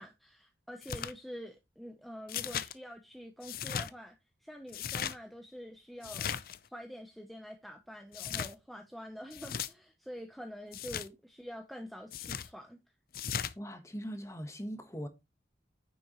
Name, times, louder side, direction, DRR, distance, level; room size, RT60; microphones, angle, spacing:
voice 1, 0.0-6.3 6.7-12.8, equal, ahead, 0.7 m, -46 dB
sound 1, 0.8-1.1 2.3-2.7 3.4-3.9 4.7-5.1 6.0-6.6 8.1-8.5 9.3-9.7 10.7-11.1 12.1-12.5 13.1-13.5, left 8 dB, 55° left, 0.6 m, -37 dB
voice 2, 13.6-15.1, equal, 15° left, 1.3 m, -40 dB
9.6 x 7.6 x 3.1 m
head